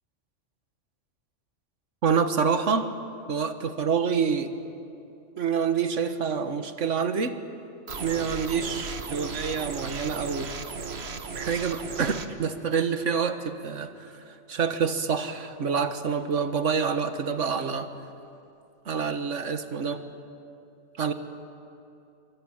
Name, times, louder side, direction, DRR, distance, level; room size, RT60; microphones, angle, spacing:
voice 1, 2.0-2.9 3.3-4.5 5.4-7.4 8.0-10.5 11.4-13.9 14.5-17.9 18.9-20.0 21.0-21.1, right 6 dB, 70° right, 8 dB, 1.7 m, -27 dB
sound 1, 7.9-12.3, right 4 dB, 55° right, 1.6 m, -36 dB
27.5 x 24.0 x 8.8 m, 2.7 s
omnidirectional pair, 1.3 m